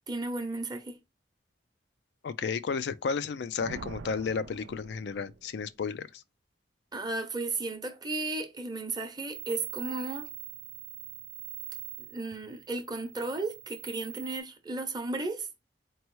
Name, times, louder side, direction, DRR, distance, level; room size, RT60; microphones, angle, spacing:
voice 1, 0.1-1.0 6.9-10.3 12.1-15.5, right 2 dB, 25° right, 0.8 m, -34 dB
voice 2, 2.2-6.2, left 5 dB, 65° left, 0.3 m, -33 dB
Thunder, 3.6-5.8, right 5 dB, 85° right, 0.4 m, -45 dB
sound 1, 9.3-14.4, right 16 dB, 65° right, 0.8 m, -43 dB
4.4 x 3.0 x 3.0 m
head